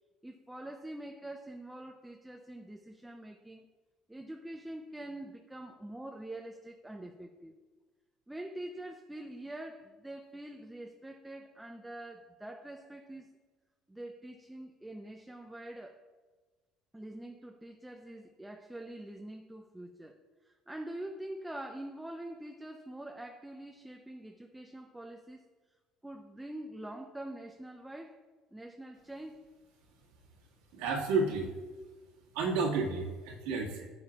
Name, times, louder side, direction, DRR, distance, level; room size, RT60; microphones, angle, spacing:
voice 1, 0.2-3.6 4.1-7.6 8.3-13.3 13.9-16.0 16.9-25.4 26.0-28.2 28.5-29.4, right 1 dB, 10° right, 0.7 m, -45 dB
voice 2, 30.7-31.5 32.3-33.9, right 3 dB, 75° right, 1.9 m, -31 dB
12.5 x 8.0 x 2.4 m
hypercardioid pair, 65°, 0 cm